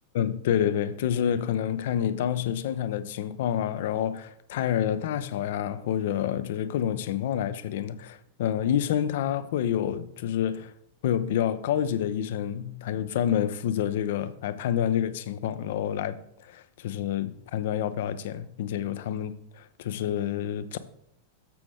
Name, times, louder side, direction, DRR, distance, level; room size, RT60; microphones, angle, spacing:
voice 1, 0.1-10.7 11.0-16.2 16.4-20.8, left 10 dB, 55° left, 0.7 m, -28 dB
13.0 x 6.1 x 3.4 m
figure-of-eight pair, 90°, 0 cm